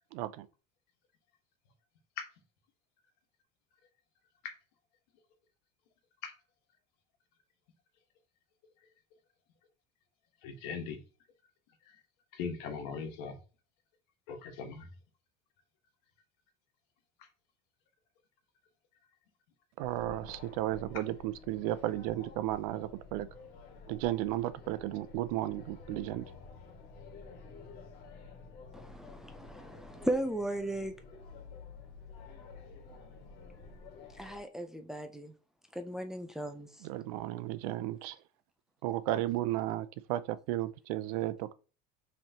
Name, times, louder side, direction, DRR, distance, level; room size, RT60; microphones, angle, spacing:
voice 1, 0.1-0.5 19.8-23.3 23.9-26.3 36.8-38.2 38.8-41.5, right 14 dB, 80° right, 0.5 m, -34 dB
voice 2, 10.4-11.0 11.8-12.0 12.3-13.4 14.3-14.9 17.2-17.3, left 5 dB, 75° left, 1.3 m, -40 dB
sound 1, 19.8-34.4, left 4 dB, 55° left, 1.8 m, -51 dB
voice 3, 28.7-30.9 34.2-35.3 35.7-36.7, right 1 dB, 5° right, 0.4 m, -36 dB
5.6 x 3.3 x 2.8 m
cardioid pair, 145°, 19 cm